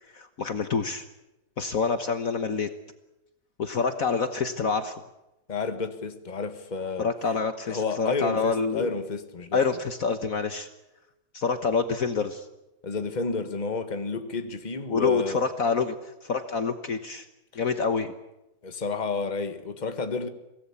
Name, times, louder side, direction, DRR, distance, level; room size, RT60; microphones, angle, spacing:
voice 1, 0.1-1.0 1.6-2.7 3.6-4.9 7.0-8.9 9.5-10.7 11.3-12.4 14.9-17.2 17.5-18.1, left 5 dB, 55° left, 1.5 m, -27 dB
voice 2, 5.5-7.1 7.7-9.6 12.8-15.4 18.6-20.3, left 4 dB, 25° left, 1.6 m, -30 dB
24.0 x 18.0 x 8.5 m
omnidirectional pair, 1.9 m